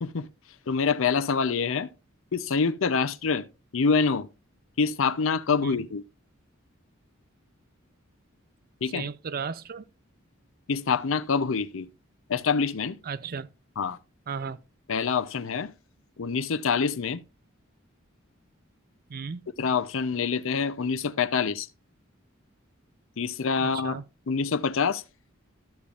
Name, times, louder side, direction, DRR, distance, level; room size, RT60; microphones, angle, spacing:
voice 1, 0.7-1.9 2.3-3.5 3.7-4.3 4.8-6.0 8.8-9.1 10.7-11.9 12.3-13.0 13.8-14.0 14.9-15.7 16.2-17.2 19.6-21.7 23.2-24.0 24.3-25.0, left 5 dB, 70° left, 0.6 m, -26 dB
voice 2, 8.9-9.8 13.0-13.5 14.3-14.6 19.1-19.5 23.6-24.0, right 5 dB, 45° right, 0.5 m, -35 dB
13.0 x 6.9 x 2.4 m
head